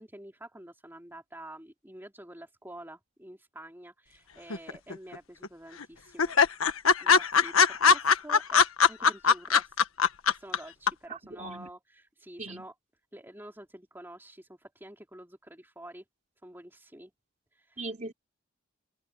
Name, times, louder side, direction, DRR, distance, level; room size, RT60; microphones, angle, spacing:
voice 1, 0.0-6.4 7.0-8.6 8.9-9.8 10.3-12.7 13.1-16.0 16.4-17.1 17.5-18.1, right 1 dB, 10° right, 3.8 m, -48 dB
sound 1, 4.5-5.2 5.4-5.5 5.8-5.9 6.2-10.6 10.9-11.0, left 6 dB, 90° left, 1.5 m, -21 dB
voice 2, 11.1-11.7 12.4-12.7 17.8-18.1, right 2 dB, 35° right, 3.6 m, -39 dB
open air
head